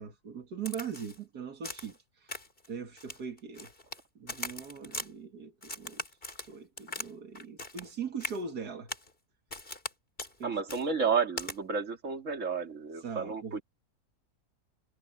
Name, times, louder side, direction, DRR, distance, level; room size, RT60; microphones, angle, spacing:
voice 1, 0.0-2.4 2.7-3.7 4.2-6.0 6.5-8.9 10.4-10.5 13.0-13.6, right 6 dB, 85° right, 2.4 m, -40 dB
Crack, 0.7-1.2 1.6-2.0 2.3-2.7 3.0-4.0 4.3-5.1 5.6-7.1 7.4-7.9 8.2-8.4 8.9-9.1 9.5-9.9 10.2-10.3 10.7-10.8 11.4-11.6, left 2 dB, 35° left, 3.8 m, -40 dB
voice 2, 10.4-13.6, right 5 dB, 55° right, 2.9 m, -31 dB
omnidirectional pair, 1.6 m